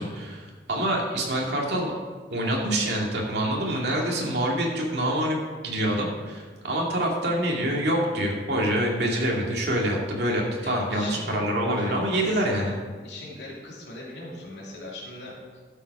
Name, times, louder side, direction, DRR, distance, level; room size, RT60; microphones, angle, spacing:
voice 1, 0.0-1.9 2.3-5.4 5.6-12.7, right 1 dB, 70° right, -2 dB, 2.3 m, -26 dB
voice 2, 10.6-11.4 11.7-12.7 13.0-15.6, left 2 dB, 85° left, -4 dB, 2.5 m, -40 dB
12.5 x 7.4 x 4.7 m, 1.5 s
head